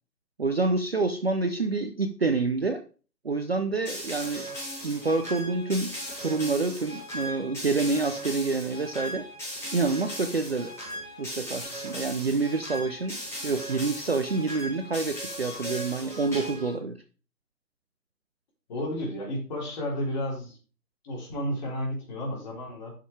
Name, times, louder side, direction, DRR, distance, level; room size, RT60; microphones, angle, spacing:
voice 1, 0.4-2.8 3.2-4.5 4.8-5.9 6.2-9.3 9.7-10.7 11.2-13.2 13.4-17.0, right 3 dB, 40° right, 8 dB, 0.6 m, -27 dB
sound 1, 3.8-16.8, equal, 5° left, 3.9 m, -37 dB
voice 2, 18.7-20.6 21.0-22.9, equal, 25° left, -3 dB, 3.6 m, -32 dB
11.0 x 6.5 x 3.3 m, 0.37 s
figure-of-eight pair, 145°, 48 cm